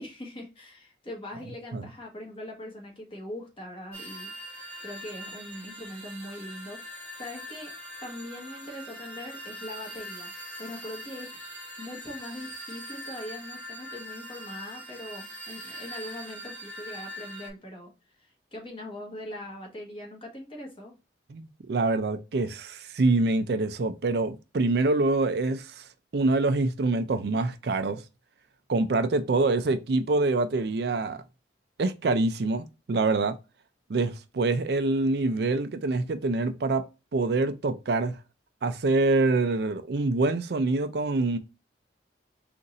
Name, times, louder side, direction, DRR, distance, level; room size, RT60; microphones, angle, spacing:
voice 1, 0.0-6.8 7.2-7.7 8.0-10.3 10.6-11.4 11.8-20.9, left 1 dB, 30° left, 1.4 m, -41 dB
sound 1, 3.9-17.5, equal, 10° left, 1.1 m, -42 dB
voice 2, 21.3-25.8 26.1-28.0 28.7-31.2 31.8-33.4 33.9-36.8 37.1-38.2 38.6-41.4, right 3 dB, 60° right, 0.4 m, -25 dB
3.9 x 2.5 x 4.0 m
head